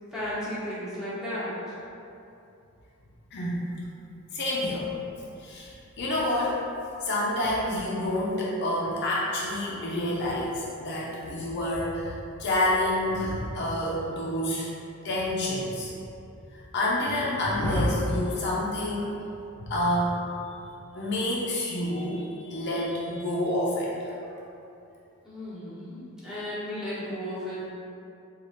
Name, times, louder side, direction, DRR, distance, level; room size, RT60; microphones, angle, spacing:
voice 1, 0.1-1.5 25.2-27.7, equal, 5° right, -11 dB, 1.0 m, -34 dB
voice 2, 3.3-3.6 4.3-4.9 5.4-6.6 7.0-12.1 12.4-14.7 15.0-15.9 16.5-19.2 19.6-20.2 20.9-24.1, left 1 dB, 55° left, -5 dB, 0.5 m, -28 dB
3.1 x 2.4 x 3.9 m, 2.7 s
head